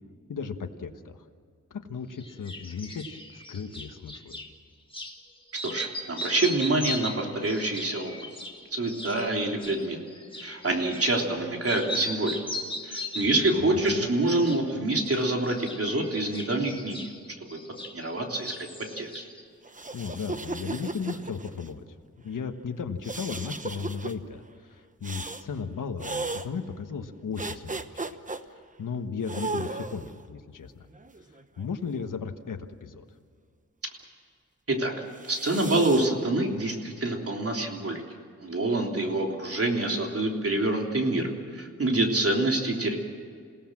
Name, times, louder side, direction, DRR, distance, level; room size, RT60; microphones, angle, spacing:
voice 1, 0.3-1.2 1.7-4.4 13.6-14.1 19.9-21.8 22.2-28.0 28.5-30.7 31.6-33.0, left 5 dB, 85° left, 6 dB, 1.4 m, -35 dB
sound 1, 2.2-4.5 4.9-5.2 5.5-11.4 11.6-13.5 13.8-14.6 14.9-18.2 18.4-19.4, left 1 dB, 15° left, 2.1 m, -39 dB
voice 2, 5.6-8.3 8.7-10.0 10.4-12.4 12.8-17.1 17.4-17.6 17.9-18.5 19.0-19.2 34.7-34.9 35.3-38.0 38.4-43.0, right 2 dB, 50° right, 1 dB, 3.3 m, -26 dB
Young Nose Blowing, 19.6-21.7 23.0-24.1 25.0-25.5 26.0-26.5 27.4-28.4 29.3-30.1 30.9-32.1 35.1-36.1, right 3 dB, 25° right, 1.0 m, -36 dB
28.0 x 17.5 x 7.5 m, 2.2 s
wide cardioid pair, 110°, 31 cm